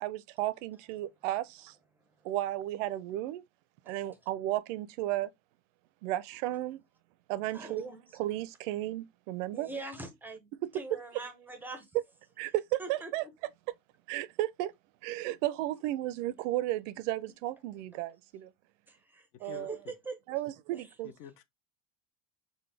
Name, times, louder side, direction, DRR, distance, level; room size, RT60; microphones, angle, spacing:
voice 1, 0.0-1.8 2.2-3.4 3.9-5.3 6.0-6.8 7.3-7.8 8.2-9.7 10.6-10.7 12.4-13.2 14.1-14.7 15.0-18.5 19.4-19.7 20.3-21.1, right 15 dB, 80° right, 0.5 m, -34 dB
voice 2, 1.9-2.3 3.9-4.2 7.5-8.2 9.5-11.9 12.8-13.3 18.9-20.2 20.7-20.9, right 3 dB, 5° right, 0.5 m, -44 dB
voice 3, 19.4-19.9 21.0-21.4, left 10 dB, 50° left, 0.6 m, -48 dB
3.9 x 2.1 x 3.2 m
cardioid pair, 150°, 37 cm